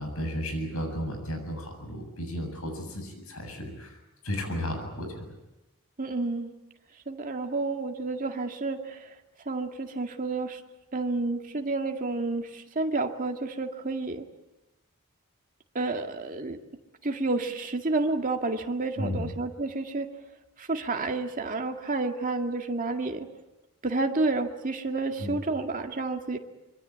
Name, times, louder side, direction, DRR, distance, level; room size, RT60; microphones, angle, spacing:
voice 1, 0.0-4.0 4.2-5.2 19.0-19.3 25.2-25.3, equal, 75° left, 5 dB, 7.8 m, -33 dB
voice 2, 6.0-6.5 7.1-9.1 9.5-10.6 10.9-14.2 15.7-16.6 17.0-20.1 20.6-23.3 23.8-26.4, right 3 dB, 40° right, 4 dB, 2.1 m, -30 dB
26.0 x 23.5 x 8.6 m, 0.97 s
head